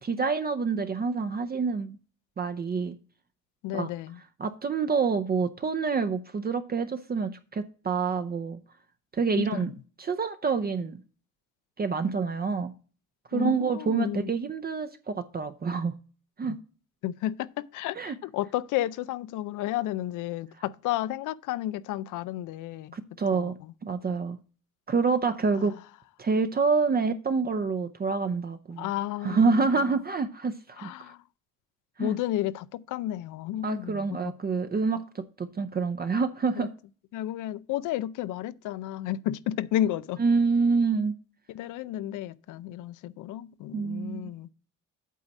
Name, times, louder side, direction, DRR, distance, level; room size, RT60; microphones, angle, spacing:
voice 1, 0.0-2.0 2.4-3.0 3.7-3.9 4.4-8.6 9.1-9.7 10.0-11.0 11.8-12.7 13.3-15.9 16.4-16.6 17.9-18.2 22.9-24.4 24.9-25.7 26.2-28.9 29.2-31.1 32.0-32.2 33.6-36.7 40.2-41.1 43.7-44.3, right 4 dB, 30° right, 0.6 m, -27 dB
voice 2, 3.6-4.2 9.5-9.6 13.3-14.3 16.5-16.6 17.0-22.9 23.3-23.5 25.6-25.7 28.8-29.7 30.8-31.2 32.0-34.3 36.6-36.7 37.1-40.2 41.5-44.5, left 13 dB, 90° left, 0.5 m, -32 dB
8.4 x 4.1 x 7.0 m
cardioid pair, 90°, 30 cm